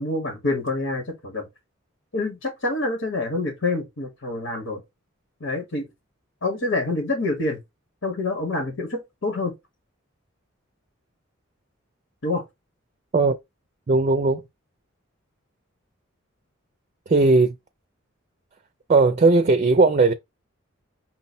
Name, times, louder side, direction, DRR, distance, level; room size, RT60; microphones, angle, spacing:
voice 1, 0.0-1.5 2.1-4.8 5.4-5.9 6.4-7.6 8.0-9.5 12.2-12.4, left 2 dB, 80° left, 1.4 m, -27 dB
voice 2, 13.9-14.4 17.1-17.5 18.9-20.1, right 3 dB, 35° right, 0.4 m, -17 dB
5.8 x 2.2 x 4.2 m
head